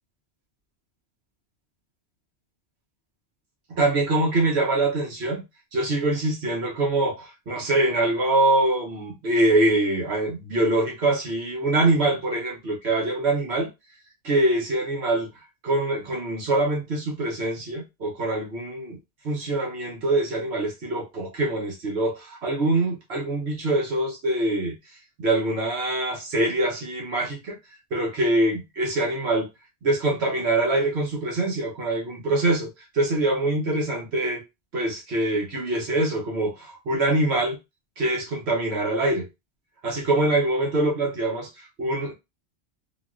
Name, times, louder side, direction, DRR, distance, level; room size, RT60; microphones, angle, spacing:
voice 1, 3.7-5.4 5.7-13.7 14.2-15.3 15.6-19.0 19.2-24.7 25.2-27.6 27.9-29.5 29.8-32.7 32.9-34.4 34.7-37.6 38.0-39.3 39.8-42.1, right 2 dB, 65° right, 1.2 m, -24 dB
3.9 x 2.4 x 2.4 m
omnidirectional pair, 1.2 m